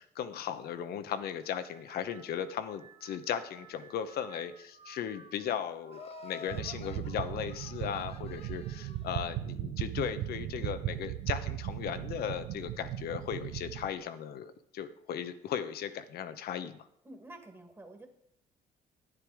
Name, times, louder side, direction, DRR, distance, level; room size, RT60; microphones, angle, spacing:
voice 1, 0.0-16.9, left 9 dB, 65° left, 11 dB, 1.0 m, -37 dB
sound 1, 1.4-11.0 11.5-12.1 13.0-13.4, right 5 dB, 40° right, 2.7 m, -58 dB
Laughter, 5.9-9.1, left 6 dB, 35° left, 0.6 m, -50 dB
Heartbeat Drone, 6.5-13.9, right 13 dB, 75° right, 0.7 m, -37 dB
voice 2, 17.0-18.1, right 2 dB, 15° right, 5 dB, 1.9 m, -49 dB
11.5 x 9.7 x 4.9 m, 0.75 s
cardioid pair, 110°, 17 cm